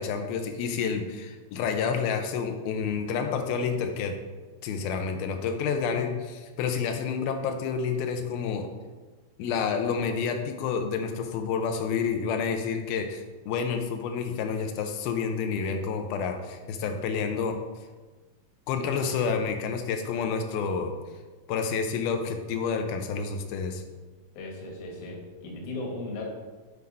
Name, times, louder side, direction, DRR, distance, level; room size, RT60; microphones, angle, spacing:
voice 1, 0.0-4.2 4.6-8.7 9.4-17.6 18.7-21.0 21.5-23.8, left 6 dB, 85° left, 5 dB, 2.6 m, -29 dB
voice 2, 24.3-26.2, left 2 dB, 50° left, -1 dB, 2.0 m, -37 dB
8.2 x 4.9 x 5.3 m, 1.3 s
omnidirectional pair, 4.2 m